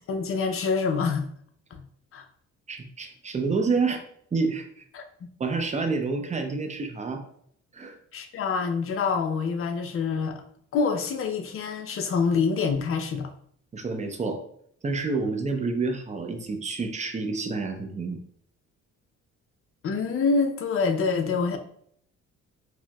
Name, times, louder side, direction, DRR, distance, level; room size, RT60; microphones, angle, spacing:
voice 1, 0.1-1.3 1.7-1.8 2.1-2.2 4.9-5.0 8.1-10.4 10.7-13.3 19.8-21.6, left 5 dB, 45° left, 0.5 m, -26 dB
voice 2, 2.7-4.0 4.3-4.8 5.4-7.2 7.7-8.0 13.7-14.4 14.8-18.2, right 4 dB, 25° right, 0.5 m, -28 dB
4.4 x 2.0 x 2.2 m
cardioid pair, 90°, 30 cm